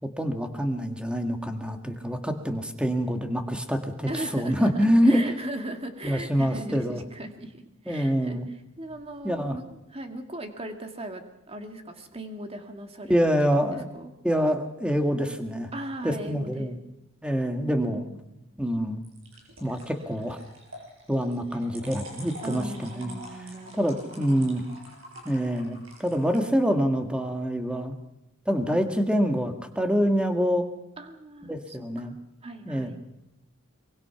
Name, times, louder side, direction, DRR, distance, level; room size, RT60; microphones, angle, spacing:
voice 1, 0.0-5.2 6.0-7.0 7.9-8.5 9.2-9.6 13.1-13.9 14.2-15.7 16.0-16.8 17.2-18.1 18.6-19.0 19.6-20.4 21.1-23.1 23.8-24.6 25.2-28.0 28.4-30.6 31.5-32.1 32.6-32.9, equal, 5° right, 5 dB, 1.8 m, -26 dB
voice 2, 4.1-8.4 8.8-11.2 11.5-13.1 13.5-14.1 15.7-16.7 17.8-18.2 22.4-24.5 31.0-32.1 32.4-33.0, right 1 dB, 30° right, 5 dB, 2.1 m, -38 dB
sound 1, 8.8-9.4 19.0-26.4, right 1 dB, 70° right, 7.1 m, -46 dB
23.5 x 23.5 x 5.8 m, 0.94 s
head